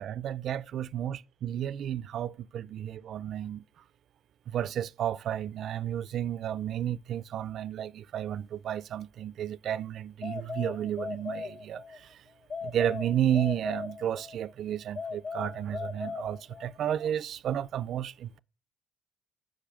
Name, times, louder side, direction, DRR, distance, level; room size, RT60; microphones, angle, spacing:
voice 1, 0.0-3.6 4.5-12.2 12.6-18.4, right 10 dB, 70° right, 0.3 m, -32 dB
sound 1, 10.2-12.0 12.5-14.4 15.0-16.8, left 5 dB, 55° left, 0.6 m, -38 dB
10.0 x 5.5 x 3.5 m
cardioid pair, 90°, 0 cm